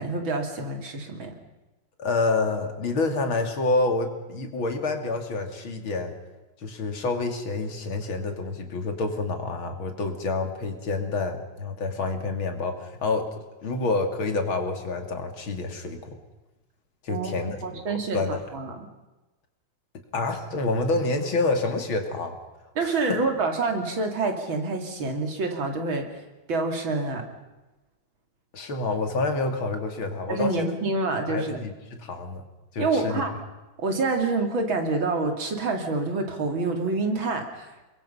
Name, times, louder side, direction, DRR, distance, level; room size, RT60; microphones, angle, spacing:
voice 1, 0.0-1.3 17.1-17.3 17.6-18.8 22.8-26.1 26.5-27.2 30.3-31.6 32.8-33.3 33.8-37.9, right 3 dB, 65° right, 4 dB, 3.4 m, -27 dB
voice 2, 2.0-6.1 6.6-13.3 13.6-16.1 17.0-18.4 20.1-22.4 22.8-23.2 28.5-30.7 31.3-32.4 32.7-33.2, left 3 dB, 70° left, 5 dB, 3.2 m, -28 dB
28.5 x 22.5 x 5.7 m, 1.1 s
omnidirectional pair, 2.3 m